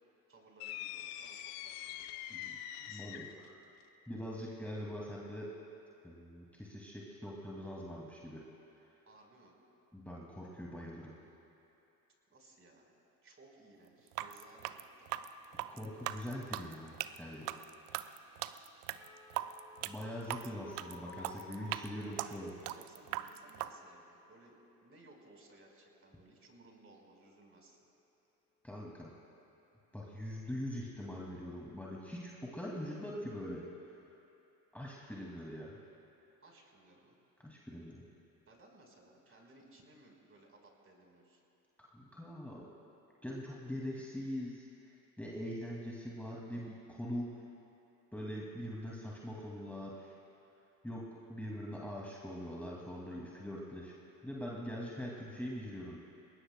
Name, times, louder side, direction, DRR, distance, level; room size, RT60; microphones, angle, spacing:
voice 1, 0.3-3.4 9.0-9.5 12.3-12.9 13.2-15.1 22.7-27.8 36.4-37.2 38.5-41.4, right 2 dB, 25° right, 0 dB, 4.3 m, -61 dB
sound 1, 0.6-3.5, left 11 dB, 60° left, 0.9 m, -44 dB
voice 2, 2.9-3.3 4.1-5.5 6.0-8.4 9.9-11.1 15.7-16.9 17.2-17.5 19.8-22.5 28.6-29.1 29.9-34.1 34.7-35.8 37.4-38.0 41.8-42.7 43.2-47.3 48.1-50.2 50.8-53.9 54.2-56.0, equal, 5° left, -4 dB, 2.3 m, -43 dB
sound 2, 14.1-23.7, right 15 dB, 65° right, 0.7 m, -40 dB
sound 3, 18.9-24.7 25.0-25.4 25.8-26.0, left 3 dB, 80° left, 3.5 m, -57 dB
28.5 x 21.0 x 2.2 m, 2.9 s
figure-of-eight pair, 65°, 49 cm